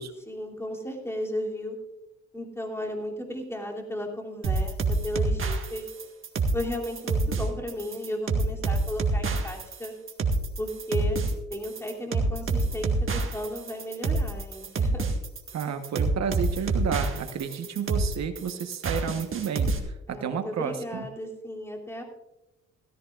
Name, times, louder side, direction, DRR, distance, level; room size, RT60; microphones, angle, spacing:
voice 1, 0.3-1.8 2.3-5.9 6.5-9.9 10.6-11.2 11.5-15.1 20.1-22.0, left 1 dB, 10° left, 0 dB, 3.0 m, -34 dB
sound 1, 4.4-19.8, right 3 dB, 45° right, 1.8 m, -27 dB
voice 2, 15.5-21.1, right 7 dB, 60° right, 7 dB, 1.2 m, -31 dB
16.5 x 14.5 x 2.5 m, 0.96 s
cardioid pair, 90°, 30 cm